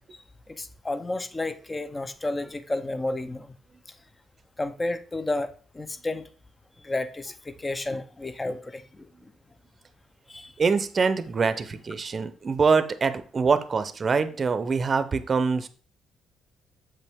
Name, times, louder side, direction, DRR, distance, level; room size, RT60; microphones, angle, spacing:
voice 1, 0.6-3.5 4.6-6.2 6.8-9.3 10.3-10.5, left 2 dB, 20° left, 0.7 m, -31 dB
voice 2, 10.6-15.7, right 5 dB, 40° right, 0.7 m, -24 dB
7.4 x 5.4 x 3.5 m
cardioid pair, 90°, 0 cm